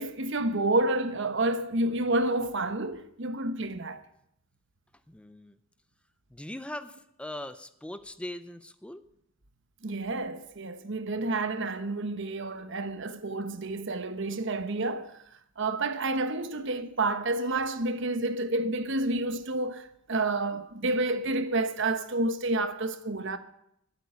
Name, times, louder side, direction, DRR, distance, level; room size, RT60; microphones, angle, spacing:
voice 1, 0.0-4.0 9.8-15.2 15.6-23.4, right 2 dB, 65° right, 1.1 m, -29 dB
voice 2, 5.1-5.6 6.3-9.0, left 1 dB, 5° left, 0.6 m, -40 dB
12.5 x 8.4 x 9.6 m
head